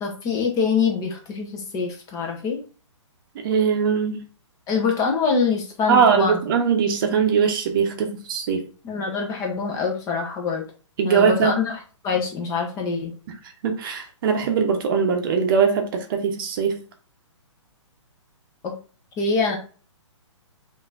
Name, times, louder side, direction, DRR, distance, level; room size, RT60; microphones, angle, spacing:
voice 1, 0.0-2.6 4.7-6.4 8.8-10.7 11.0-11.8 12.0-13.1 18.6-18.7 19.2-19.6, left 5 dB, 20° left, 1.0 m, -24 dB
voice 2, 3.3-4.2 5.9-8.7 11.0-11.6 13.3-13.4 13.6-16.8, right 6 dB, 45° right, 0.9 m, -21 dB
5.7 x 2.8 x 2.5 m
hypercardioid pair, 140°, 16 cm